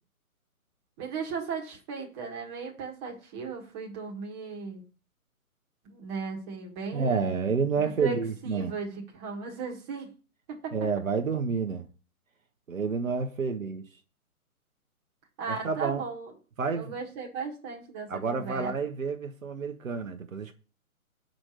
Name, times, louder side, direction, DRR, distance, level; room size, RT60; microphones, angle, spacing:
voice 1, 1.0-4.8 5.8-8.2 8.4-10.1 10.6-10.7 15.4-16.3 16.7-18.7, right 5 dB, 20° right, 1.7 m, -36 dB
voice 2, 6.9-8.7 10.7-11.9 12.7-13.8 15.5-16.0 16.6-17.0 18.1-20.5, right 5 dB, 65° right, 1.1 m, -29 dB
7.4 x 5.2 x 6.4 m
figure-of-eight pair, 135°, 44 cm